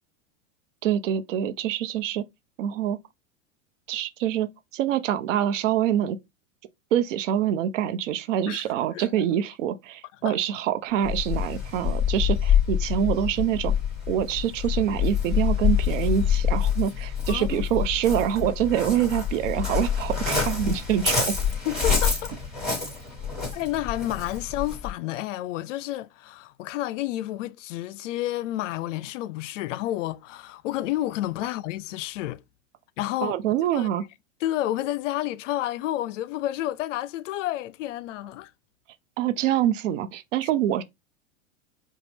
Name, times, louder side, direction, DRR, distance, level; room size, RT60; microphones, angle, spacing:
voice 1, 0.8-2.2 2.6-3.0 3.9-6.2 6.9-13.7 14.1-21.3 33.2-34.0 39.2-40.8, right 10 dB, 70° right, 0.8 m, -25 dB
Waves surf, 11.0-24.9, left 7 dB, ahead, 2.5 m, -26 dB
voice 2, 17.3-17.7 21.7-22.3 23.5-32.4 33.0-33.4 33.7-33.9 34.4-38.5, left 14 dB, 70° left, 0.5 m, -30 dB
5.1 x 2.3 x 3.4 m
hypercardioid pair, 110°, 39 cm